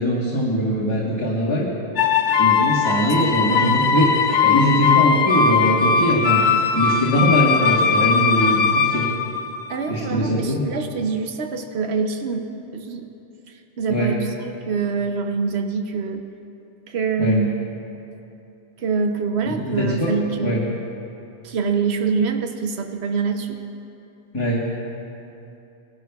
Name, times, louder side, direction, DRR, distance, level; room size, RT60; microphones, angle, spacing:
voice 1, 0.0-1.7 2.4-4.1 4.4-6.5 6.7-9.0 9.9-10.6 13.9-14.1 17.2-17.4 19.4-20.1 20.4-20.6 24.3-24.6, equal, 25° left, -6 dB, 1.3 m, -21 dB
Momo's Bear, 2.0-9.9, left 5 dB, 55° left, 0.6 m, -19 dB
voice 2, 3.0-3.6 9.7-12.5 12.7-13.1 13.8-16.2 16.9-17.6 18.8-20.6 21.4-23.6, right 5 dB, 90° right, 5 dB, 1.0 m, -25 dB
19.0 x 12.0 x 2.3 m, 2.8 s
omnidirectional pair, 1.1 m